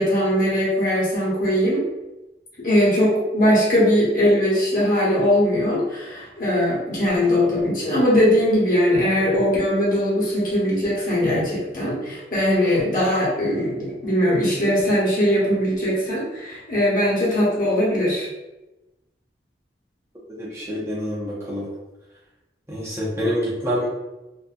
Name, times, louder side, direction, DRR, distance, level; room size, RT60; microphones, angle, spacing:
voice 1, 0.0-1.8 2.6-18.3, equal, 50° left, -6 dB, 1.0 m, -20 dB
voice 2, 20.4-21.6 22.7-23.9, equal, 15° right, -6 dB, 0.5 m, -26 dB
2.6 x 2.5 x 2.5 m, 1.0 s
head